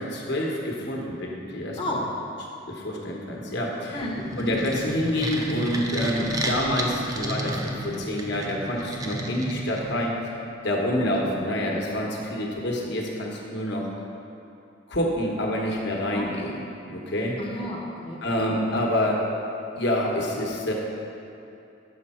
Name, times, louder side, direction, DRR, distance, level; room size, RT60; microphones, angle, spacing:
voice 1, 0.0-2.1 2.7-4.0 4.4-10.1 10.6-13.9 14.9-16.6 16.9-17.4 18.2-19.2 19.8-20.7, left 1 dB, 60° left, -1 dB, 1.0 m, -27 dB
voice 2, 3.9-4.6 16.1-16.3 17.4-18.2 18.5-18.6, left 1 dB, 25° left, -1 dB, 0.8 m, -32 dB
sound 1, 3.9-10.2, right 1 dB, 20° right, 0.5 m, -32 dB
6.7 x 5.4 x 4.3 m, 2.7 s
head